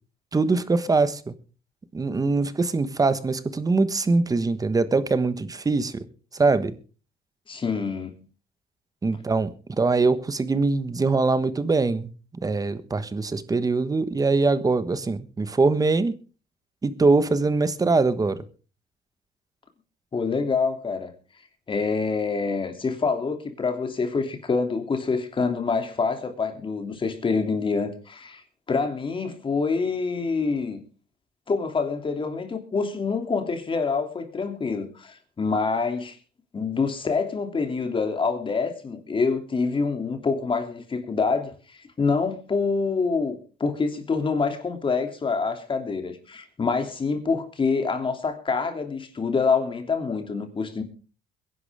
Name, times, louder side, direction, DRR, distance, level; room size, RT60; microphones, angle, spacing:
voice 1, 0.3-1.3 1.9-6.0 6.3-6.8 9.0-16.1 16.8-18.4, right 3 dB, 20° right, 13 dB, 1.3 m, -23 dB
voice 2, 7.5-8.1 20.1-21.1 21.7-28.4 28.7-30.8 31.5-36.2 36.5-50.8, left 4 dB, 30° left, 6 dB, 2.9 m, -26 dB
22.0 x 11.0 x 3.6 m, 0.35 s
cardioid pair, 110°, 17 cm